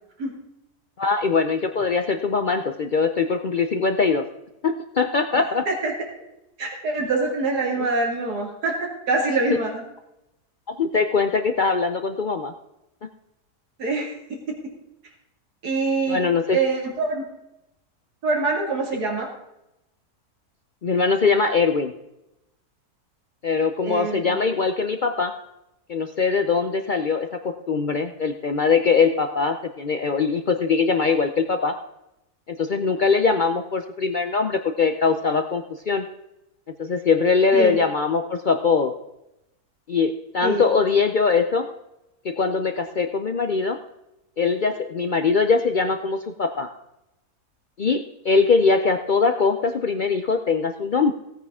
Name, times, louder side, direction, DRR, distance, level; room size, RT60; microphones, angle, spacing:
voice 1, 1.0-4.2 4.6-5.6 10.7-12.5 16.1-16.6 20.8-21.9 23.4-25.3 25.9-31.8 32.5-36.1 36.8-38.9 39.9-41.7 42.2-43.8 44.4-46.7 47.8-51.1, left 4 dB, 75° left, 7 dB, 0.4 m, -22 dB
voice 2, 6.6-9.8 13.8-14.1 15.6-16.2 16.5-17.3 18.2-19.3 23.9-24.4 37.5-37.8 40.4-40.7, right 3 dB, 85° right, 0 dB, 2.7 m, -24 dB
16.5 x 9.0 x 3.6 m, 0.89 s
omnidirectional pair, 1.7 m